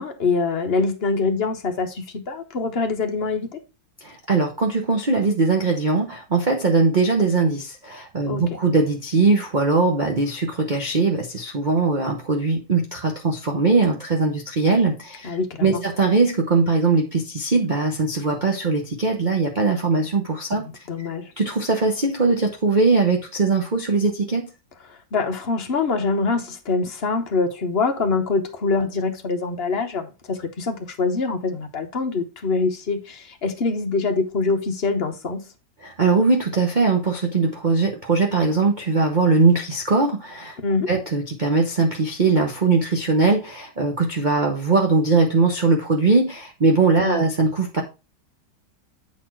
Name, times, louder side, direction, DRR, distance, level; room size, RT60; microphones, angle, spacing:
voice 1, 0.0-3.6 8.3-8.6 15.2-15.8 20.9-21.3 25.1-35.4 40.6-40.9 47.0-47.2, left 4 dB, 40° left, 0.9 m, -24 dB
voice 2, 4.0-20.7 21.4-24.5 35.8-40.6 40.9-47.8, right 3 dB, 35° right, 0.7 m, -20 dB
8.4 x 4.3 x 4.5 m
omnidirectional pair, 2.2 m